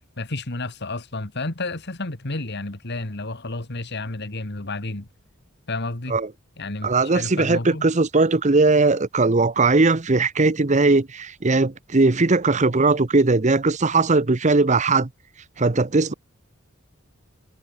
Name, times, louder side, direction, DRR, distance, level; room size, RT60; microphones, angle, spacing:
voice 1, 0.2-5.1 5.7-6.2 6.6-7.9, left 2 dB, 55° left, 2.1 m, -31 dB
voice 2, 6.8-15.1 15.6-16.1, right 3 dB, 35° right, 0.9 m, -19 dB
head